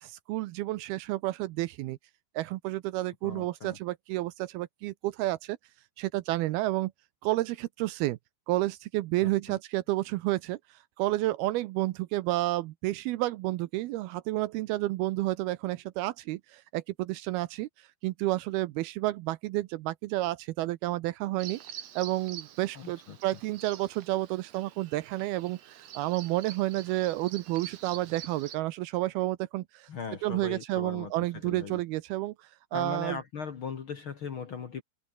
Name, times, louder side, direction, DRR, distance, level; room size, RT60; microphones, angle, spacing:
voice 1, 0.0-2.0 2.4-5.6 6.0-6.9 7.2-8.2 8.5-10.6 11.0-17.7 18.0-21.6 22.0-29.9 30.2-32.3 32.7-33.2, right 17 dB, 80° right, 2.3 m, -30 dB
voice 2, 3.2-3.8 9.2-9.6 22.7-23.2 29.9-31.8 32.7-34.8, left 6 dB, 65° left, 1.2 m, -39 dB
Bird vocalization bird call bird song, 21.4-28.6, right 10 dB, 60° right, 1.9 m, -46 dB
omnidirectional pair, 5.1 m